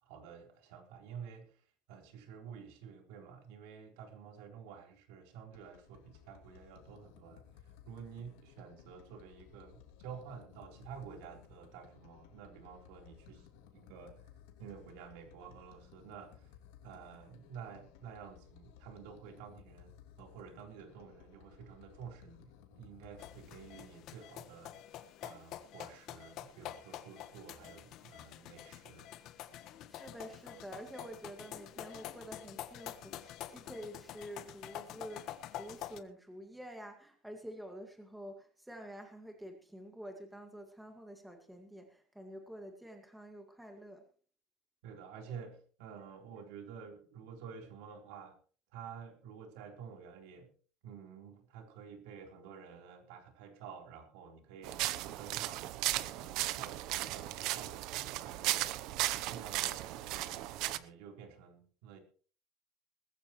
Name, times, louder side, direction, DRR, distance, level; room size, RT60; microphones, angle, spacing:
voice 1, 0.0-13.5 13.7-14.3 14.6-16.5 16.8-29.1 44.8-48.4 48.7-50.5 50.8-62.0, right 7 dB, 80° right, 3.9 m, -51 dB
sound 1, 5.5-24.0, left 9 dB, 80° left, 2.7 m, -59 dB
sound 2, 23.2-36.0, left 12 dB, 45° left, 1.2 m, -47 dB
voice 2, 29.9-44.0, equal, ahead, 2.0 m, -48 dB
sound 3, 54.6-60.8, right 16 dB, 55° right, 0.8 m, -36 dB
20.0 x 14.5 x 3.1 m
cardioid pair, 170°, 0 cm